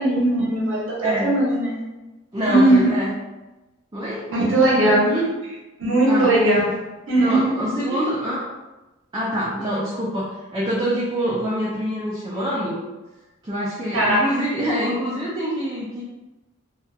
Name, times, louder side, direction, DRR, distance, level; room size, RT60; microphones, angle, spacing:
voice 1, 0.0-1.8 2.5-2.9 4.3-5.1 5.8-6.7 7.1-7.5 7.9-8.0 13.9-14.2, right 1 dB, 65° right, -5 dB, 0.9 m, -18 dB
voice 2, 2.3-3.1 3.9-4.3 5.0-5.3 6.1-6.3 7.2-8.4 9.1-12.8 13.4-16.0, equal, 20° right, -7 dB, 0.4 m, -25 dB
2.8 x 2.3 x 2.3 m, 1.1 s
head